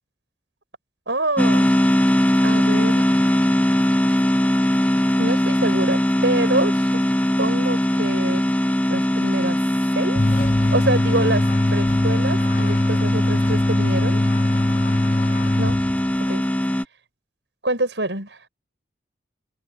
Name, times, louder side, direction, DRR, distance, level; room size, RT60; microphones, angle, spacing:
voice 1, 1.1-1.7 2.4-3.9 5.2-7.0 7.4-8.4 8.9-9.6 9.9-10.2 10.7-11.5 11.7-14.2 15.6-15.8 16.2-16.4 17.6-18.4, right 2 dB, 80° right, 7.5 m, -26 dB
sound 1, 1.4-16.8, equal, 10° left, 1.0 m, -20 dB
sound 2, 10.2-16.3, left 1 dB, 45° left, 1.3 m, -22 dB
head